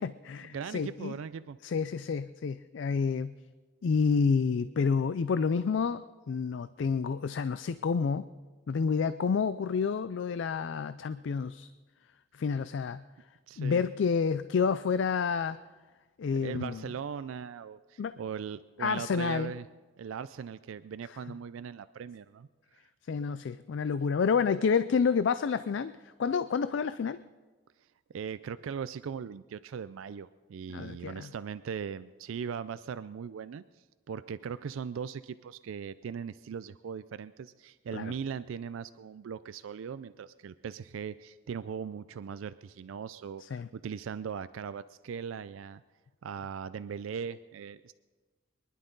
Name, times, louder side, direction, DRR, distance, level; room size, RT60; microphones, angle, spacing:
voice 1, 0.0-1.2 1.6-3.3 3.8-8.3 8.7-11.7 12.3-13.0 13.6-15.6 16.2-16.8 18.0-18.2 18.8-19.5 23.1-27.2 30.7-31.3 37.9-38.1 43.4-43.7, left 5 dB, 65° left, 14 dB, 0.4 m, -29 dB
voice 2, 0.5-1.6 13.5-13.8 16.3-19.7 20.0-22.5 27.8-27.9 28.1-45.8 46.2-47.9, right 7 dB, 80° right, 14 dB, 0.4 m, -39 dB
23.5 x 11.0 x 3.9 m, 1.3 s
head